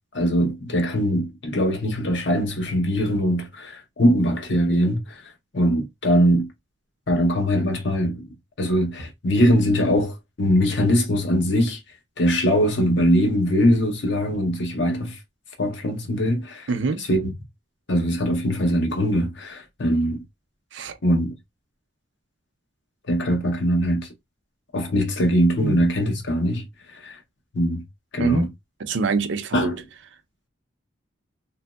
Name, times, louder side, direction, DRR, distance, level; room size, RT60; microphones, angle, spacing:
voice 1, 0.1-6.5 7.1-8.3 8.6-11.8 12.2-15.2 15.6-16.7 17.0-17.3 17.9-20.2 21.0-21.3 23.1-24.1 24.7-27.2 27.5-27.8 28.1-28.5 29.5-29.8, equal, 60° left, 0.8 m, -22 dB
voice 2, 16.7-17.0 20.7-21.0 25.6-25.8 28.2-28.5 28.8-29.8, right 4 dB, 65° right, 0.5 m, -25 dB
2.9 x 2.6 x 2.3 m
head